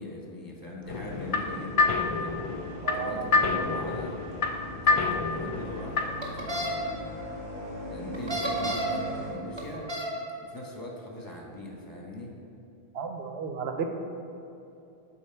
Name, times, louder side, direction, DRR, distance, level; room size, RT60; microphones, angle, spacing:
voice 1, 0.0-2.4 2.9-7.2 7.9-9.9 10.4-12.3, left 1 dB, 20° left, -1 dB, 0.9 m, -41 dB
sound 1, 0.8-9.3, equal, 60° right, 1.7 m, -40 dB
sound 2, 0.9-6.3, left 4 dB, 50° left, 0.4 m, -28 dB
voice 2, 2.8-3.6 12.9-13.9, right 6 dB, 85° right, 5 dB, 0.9 m, -34 dB
sound 3, 6.2-6.7 8.1-9.0 9.6-10.1, right 1 dB, 30° right, 0.9 m, -31 dB
7.2 x 4.3 x 4.4 m, 2.8 s
omnidirectional pair, 1.0 m